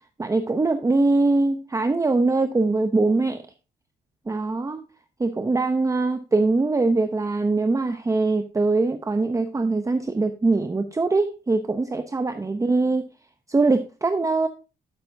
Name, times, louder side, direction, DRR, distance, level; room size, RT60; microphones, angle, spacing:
voice 1, 0.2-3.4 4.3-4.8 5.2-13.0 13.5-14.5, right 3 dB, 15° right, 8 dB, 0.7 m, -22 dB
11.5 x 8.9 x 2.7 m, 0.31 s
cardioid pair, 90°, 20 cm